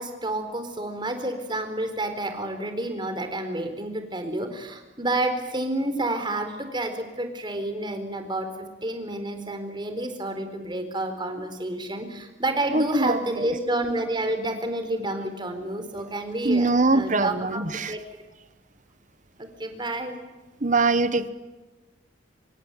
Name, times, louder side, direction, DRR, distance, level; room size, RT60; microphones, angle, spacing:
voice 1, 0.0-8.5 8.8-18.0 19.4-20.2, right 1 dB, 25° right, 7 dB, 4.3 m, -29 dB
voice 2, 12.7-13.5 16.4-17.9 20.6-21.3, right 3 dB, 40° right, 13 dB, 1.4 m, -23 dB
26.5 x 24.0 x 9.3 m, 1.2 s
head